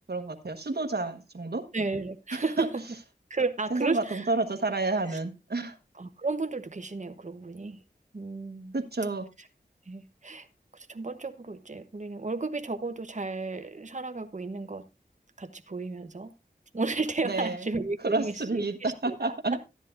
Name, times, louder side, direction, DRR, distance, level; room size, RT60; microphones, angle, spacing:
voice 1, 0.1-1.6 2.3-2.7 3.7-5.8 8.7-9.3 17.2-17.7 18.0-19.6, right 3 dB, 65° right, 6 dB, 1.3 m, -30 dB
voice 2, 1.7-2.8 3.3-4.3 5.9-7.8 8.1-8.7 9.9-10.5 10.7-14.8 15.4-16.3 16.7-19.4, right 3 dB, 45° right, 8 dB, 1.0 m, -33 dB
13.0 x 10.0 x 2.6 m, 0.25 s
wide cardioid pair, 45°, 18 cm